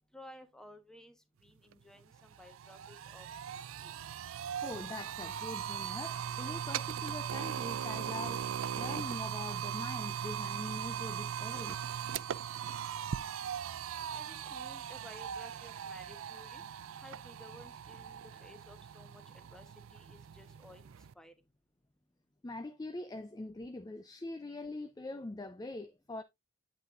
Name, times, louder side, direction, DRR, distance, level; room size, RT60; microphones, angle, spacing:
voice 1, 0.1-1.2 1.4-3.9 14.1-16.6 17.0-19.2 19.5-19.7 19.9-20.8 21.2-21.3, left 1 dB, 5° left, 1.1 m, -55 dB
sound 1, 1.7-1.8 2.1-21.1, right 8 dB, 70° right, 0.4 m, -39 dB
voice 2, 4.6-11.8 22.4-26.2, left 2 dB, 20° left, 0.4 m, -43 dB
8.4 x 7.5 x 2.5 m
head